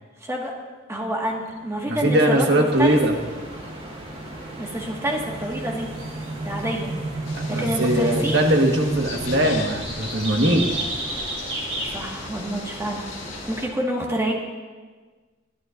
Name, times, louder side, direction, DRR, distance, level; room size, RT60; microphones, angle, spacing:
voice 1, 0.2-0.5 0.9-3.0 4.6-5.9 6.5-6.9 7.6-8.5 11.9-13.1 13.5-14.3, right 1 dB, 15° right, -1 dB, 1.7 m, -27 dB
sound 1, 1.2-9.6, right 2 dB, 80° right, 1.1 m, -33 dB
voice 2, 1.9-3.1 7.3-10.9, right 1 dB, 60° right, 2 dB, 1.6 m, -21 dB
sound 2, 2.7-13.7, right 1 dB, 35° right, 2.9 m, -35 dB
sound 3, 7.2-13.7, left 4 dB, 90° left, 1.9 m, -39 dB
22.0 x 11.0 x 2.6 m, 1.4 s
head